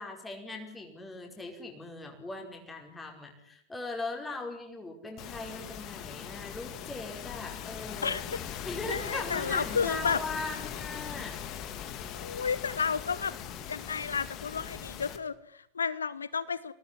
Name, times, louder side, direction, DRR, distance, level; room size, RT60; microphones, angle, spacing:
voice 1, 0.0-8.2 8.6-11.4, left 3 dB, 10° left, 2 dB, 5.1 m, -39 dB
sound 1, 5.2-15.2, left 9 dB, 35° left, 3.0 m, -40 dB
voice 2, 8.9-10.2 12.1-13.3 13.7-16.7, left 6 dB, 70° left, 18 dB, 0.9 m, -32 dB
26.5 x 18.5 x 10.0 m, 0.73 s
figure-of-eight pair, 90°, 0 cm